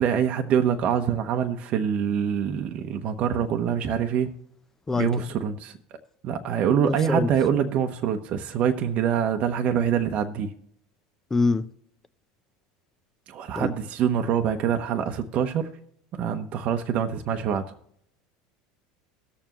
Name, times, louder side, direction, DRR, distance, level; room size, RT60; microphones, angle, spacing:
voice 1, 0.0-4.3 4.9-5.8 6.2-10.5 13.3-15.7 16.1-17.6, right 8 dB, 50° right, 1.0 m, -25 dB
voice 2, 6.8-7.3 11.3-11.7 13.6-13.7, left 3 dB, 15° left, 0.7 m, -24 dB
18.0 x 7.0 x 3.0 m
supercardioid pair, 105°, 3 cm